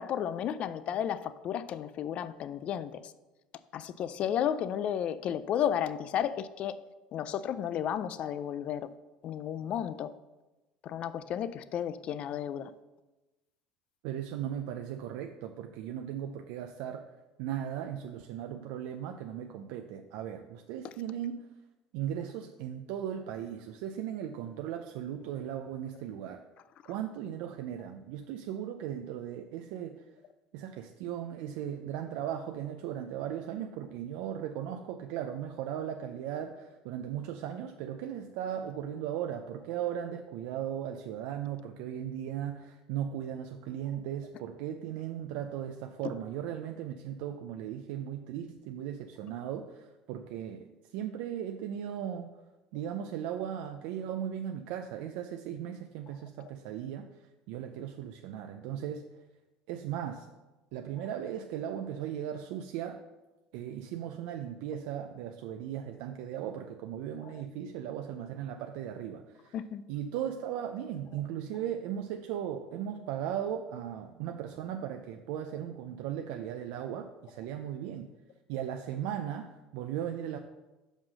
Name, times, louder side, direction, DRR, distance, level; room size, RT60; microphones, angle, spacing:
voice 1, 0.0-3.0 3.7-6.8 7.1-8.9 9.2-10.1 10.8-12.7 69.5-69.8, left 9 dB, 50° left, 0.4 m, -33 dB
voice 2, 14.0-17.1 17.4-21.4 21.9-26.4 26.9-30.0 30.5-50.7 50.9-52.3 52.7-57.1 57.5-59.1 59.7-60.3 60.7-63.0 63.5-69.6 69.9-78.1 78.5-80.4, right 10 dB, 80° right, 0.4 m, -37 dB
5.5 x 5.1 x 6.3 m
cardioid pair, 120°, 3 cm